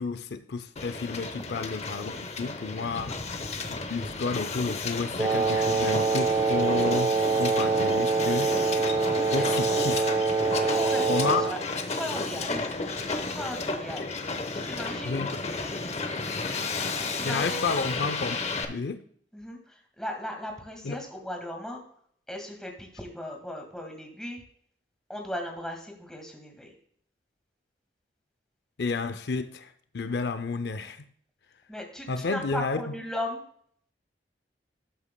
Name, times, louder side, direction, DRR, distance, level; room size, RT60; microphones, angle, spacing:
voice 1, 0.0-3.2 3.7-8.5 9.2-10.1 11.1-11.5 15.0-15.3 17.2-18.4 18.7-19.0 20.8-21.0 28.8-31.1 32.1-32.9, left 4 dB, 70° left, 0.5 m, -31 dB
Hiss, 0.8-18.6, left 3 dB, 35° left, 0.8 m, -33 dB
Wind instrument woodwind instrument, 5.2-11.6, right 4 dB, 20° right, 0.3 m, -25 dB
voice 2, 10.5-11.6 11.9-12.7 13.2-14.1 14.5-15.2 17.0-17.7 19.3-21.8 22.3-24.4 25.1-26.7 31.7-33.4, left 1 dB, 5° left, 1.8 m, -37 dB
12.5 x 8.3 x 2.2 m
head